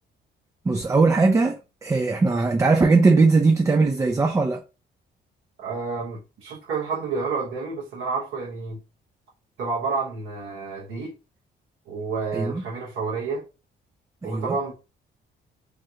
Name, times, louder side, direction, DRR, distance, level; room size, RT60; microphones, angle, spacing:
voice 1, 0.7-4.6 12.3-12.6 14.2-14.5, right 3 dB, 15° right, 0.3 m, -20 dB
voice 2, 5.6-8.8 9.6-11.1 11.9-13.4 14.2-14.7, right 4 dB, 90° right, 1.0 m, -29 dB
3.2 x 2.3 x 2.8 m
cardioid pair, 90°, 20 cm